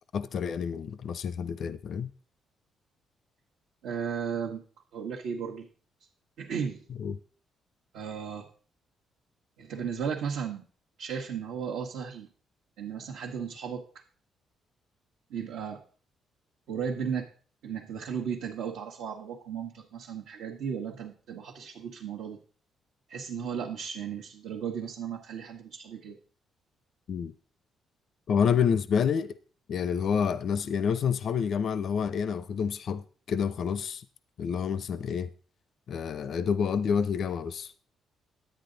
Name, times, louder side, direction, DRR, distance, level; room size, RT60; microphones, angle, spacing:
voice 1, 0.1-2.1 7.0-7.2 27.1-27.3 28.3-29.3 29.7-34.0 34.4-35.3 35.9-37.7, left 7 dB, 60° left, 0.5 m, -28 dB
voice 2, 3.8-4.6 4.9-5.7 6.4-6.8 7.9-8.5 9.6-10.6 11.0-12.3 12.8-13.8 15.3-15.8 16.7-17.3 17.6-22.4 23.1-26.2, right 7 dB, 85° right, 1.2 m, -35 dB
10.5 x 9.0 x 3.9 m
cardioid pair, 90°, 0 cm